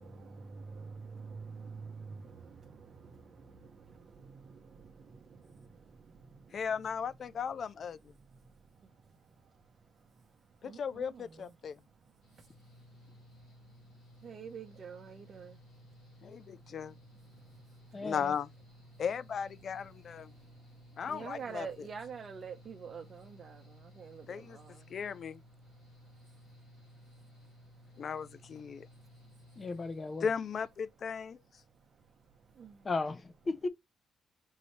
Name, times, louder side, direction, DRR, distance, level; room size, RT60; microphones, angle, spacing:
voice 1, 0.0-6.6 8.1-10.3 10.6-11.5 12.2-12.8 13.7-13.8 14.2-17.9 18.9-19.0 20.1-25.0 25.6-25.7 26.0-26.1 26.4-26.5 26.9-27.0 27.4-27.7 31.9-32.0 32.5-32.9, right 5 dB, 50° right, 0.7 m, -49 dB
voice 2, 6.5-8.0 10.6-11.8 16.2-16.9 18.0-18.5 19.0-20.3 21.0-21.9 24.3-24.6 24.9-25.4 28.0-28.9 30.2-31.4, left 7 dB, 55° left, 0.4 m, -36 dB
Mechanical fan, 12.2-30.7, left 1 dB, 90° left, 2.0 m, -57 dB
voice 3, 17.9-18.3 29.6-30.3 32.8-33.7, left 3 dB, 35° left, 0.8 m, -35 dB
5.5 x 2.7 x 3.1 m
cardioid pair, 90°, 0 cm